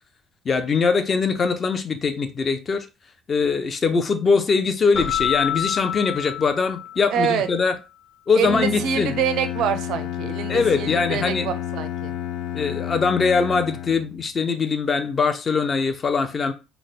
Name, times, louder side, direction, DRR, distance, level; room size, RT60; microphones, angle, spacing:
voice 1, 0.5-2.9 3.3-7.7 8.3-9.1 10.5-11.5 12.5-16.5, left 5 dB, 30° left, 0.5 m, -22 dB
Keyboard (musical), 4.9-7.3, left 11 dB, 55° left, 1.2 m, -28 dB
voice 2, 7.1-7.5 8.3-12.1, right 8 dB, 65° right, 0.5 m, -25 dB
Bowed string instrument, 8.4-14.3, left 11 dB, 90° left, 0.4 m, -31 dB
3.4 x 2.0 x 4.1 m
cardioid pair, 150°, 0 cm